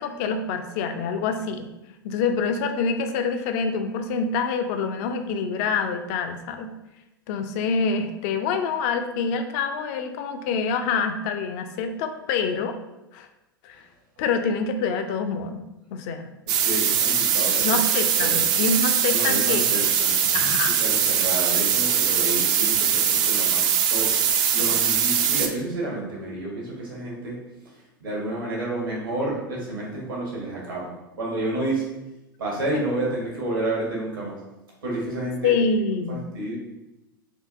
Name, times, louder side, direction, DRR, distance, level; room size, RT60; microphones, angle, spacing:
voice 1, 0.0-1.7 2.0-6.7 7.3-12.8 13.1-13.3 13.6-13.8 14.2-15.6 15.9-16.3 17.6-19.9 20.3-20.7 22.3-22.4 24.6-24.7 35.4-36.2, left 5 dB, 45° left, 7 dB, 0.4 m, -26 dB
sound 1, 16.5-25.5, right 8 dB, 40° right, 0.4 m, -21 dB
voice 2, 16.5-17.8 18.2-18.4 19.1-24.1 24.5-27.4 27.7-30.9 31.2-31.9 32.4-34.4 34.8-35.6 36.1-36.5, right 2 dB, 75° right, -4 dB, 1.5 m, -30 dB
4.3 x 2.6 x 2.6 m, 0.95 s
figure-of-eight pair, 85°, 12 cm